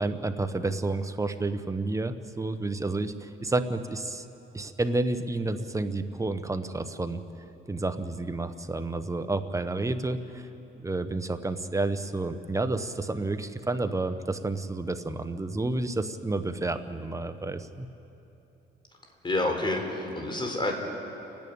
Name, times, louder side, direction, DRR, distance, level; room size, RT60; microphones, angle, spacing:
voice 1, 0.0-4.3 4.5-7.2 7.7-10.5 10.8-17.9, right 2 dB, 15° right, 9 dB, 1.1 m, -30 dB
voice 2, 19.2-20.7, left 2 dB, 25° left, 2 dB, 4.0 m, -28 dB
30.0 x 10.5 x 8.8 m, 2.9 s
cardioid pair, 90°, 20 cm